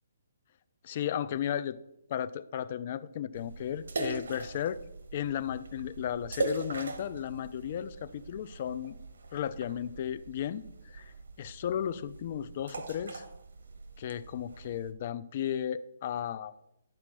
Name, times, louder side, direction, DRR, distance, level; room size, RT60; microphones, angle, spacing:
voice 1, 0.8-1.8 2.1-4.8 5.1-9.0 9.3-11.1 11.4-13.3 14.0-16.5, left 10 dB, 40° left, 15 dB, 0.5 m, -34 dB
sound 1, 3.3-14.9, right 2 dB, 75° right, 1.4 m, -41 dB
12.0 x 4.4 x 6.1 m, 0.81 s
hypercardioid pair, 165°, 0 cm